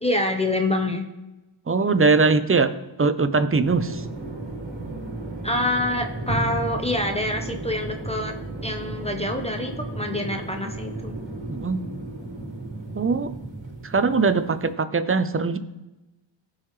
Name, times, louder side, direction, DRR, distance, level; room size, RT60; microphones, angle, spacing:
voice 1, 0.0-1.1 5.4-8.3 8.6-11.2, left 1 dB, 15° left, 4 dB, 1.1 m, -26 dB
voice 2, 1.7-2.7 3.0-4.1 11.5-11.8 12.9-13.3 13.8-15.6, right 4 dB, 25° right, 11 dB, 0.8 m, -21 dB
sound 1, 3.6-14.7, right 2 dB, 70° right, 2.0 m, -34 dB
16.0 x 5.7 x 3.3 m, 1.0 s
cardioid pair, 50°, 48 cm